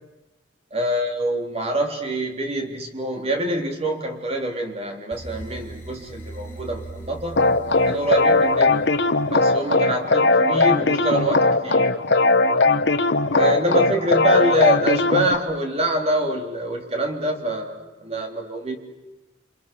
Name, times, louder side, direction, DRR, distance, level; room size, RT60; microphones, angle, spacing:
voice 1, 0.7-7.5 7.9-8.8 9.3-12.0 13.3-18.8, right 1 dB, 30° right, 3 dB, 3.7 m, -25 dB
sound 1, 5.1-9.2, right 2 dB, 15° left, 4.1 m, -39 dB
sound 2, 7.4-15.4, left 3 dB, 60° left, 1.1 m, -19 dB
29.0 x 26.0 x 7.0 m, 1.0 s
head